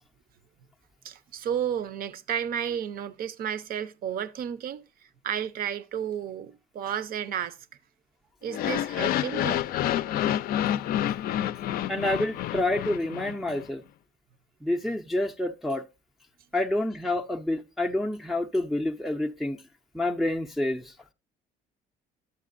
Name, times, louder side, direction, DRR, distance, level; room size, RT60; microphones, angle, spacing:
voice 1, 1.0-4.8 5.2-7.6 8.4-9.6, right 9 dB, 60° right, 0.6 m, -32 dB
sound 1, 8.5-13.6, left 12 dB, 60° left, 0.4 m, -28 dB
voice 2, 11.9-13.8 14.6-15.8 16.5-19.6 19.9-20.9, left 1 dB, ahead, 0.4 m, -28 dB
11.5 x 7.4 x 2.4 m
cardioid pair, 110°, 17 cm